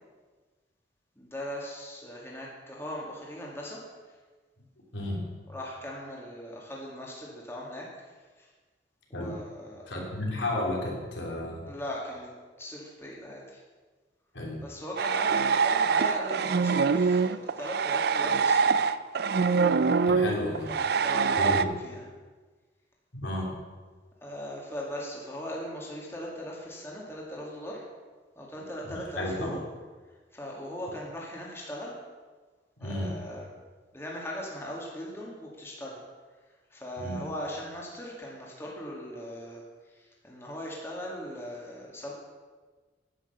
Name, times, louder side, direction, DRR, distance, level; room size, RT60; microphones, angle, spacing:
voice 1, 1.2-3.9 5.5-7.9 8.4-8.5 9.1-9.8 11.7-12.3 12.6-13.6 14.6-18.8 20.7-22.1 24.2-27.8 28.4-29.6 30.3-32.0 32.8-33.5 33.9-36.0 36.7-42.1, equal, 15° left, -3 dB, 2.2 m, -39 dB
voice 2, 9.9-11.7 14.3-14.6 20.0-20.7 21.4-21.6 23.1-23.5 28.5-29.6 32.8-33.1 37.0-37.2, left 1 dB, 80° left, -2 dB, 3.2 m, -33 dB
sound 1, 15.0-21.6, right 5 dB, 55° right, 0.4 m, -24 dB
10.0 x 9.1 x 6.9 m, 1.4 s
head